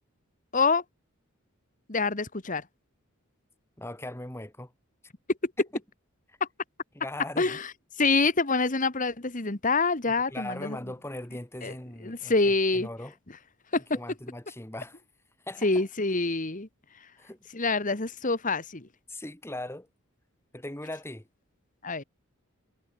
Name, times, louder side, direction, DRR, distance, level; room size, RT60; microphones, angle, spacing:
voice 1, 0.5-0.8 1.9-2.6 5.4-5.5 6.4-6.5 7.4-7.7 8.0-10.8 11.6-11.7 12.0-12.9 13.7-13.8 15.6-16.7 17.5-18.9 21.8-22.0, left 3 dB, 40° left, 1.7 m, -26 dB
voice 2, 3.8-4.7 6.3-6.4 6.9-7.6 10.3-13.1 13.9-15.0 15.5-15.9 17.2-17.4 19.1-19.9 20.5-21.3, left 1 dB, 10° left, 1.7 m, -39 dB
head